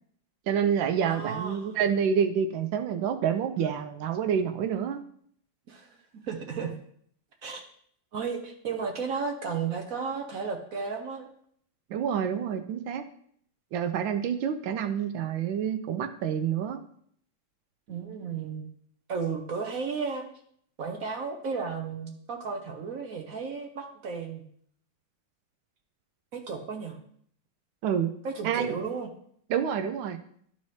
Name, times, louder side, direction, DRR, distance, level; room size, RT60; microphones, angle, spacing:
voice 1, 0.5-5.0 11.9-13.0 13.7-16.8 27.8-28.1 28.4-28.7 29.5-30.2, right 8 dB, 75° right, 9 dB, 1.3 m, -28 dB
voice 2, 1.0-1.8 5.7-5.9 6.2-6.7 7.4-7.6 8.1-11.3 17.9-18.7 19.1-20.3 20.8-24.4 26.3-27.0 28.2-29.1, right 5 dB, 60° right, 3 dB, 0.9 m, -34 dB
12.0 x 4.2 x 3.2 m, 0.63 s
omnidirectional pair, 2.2 m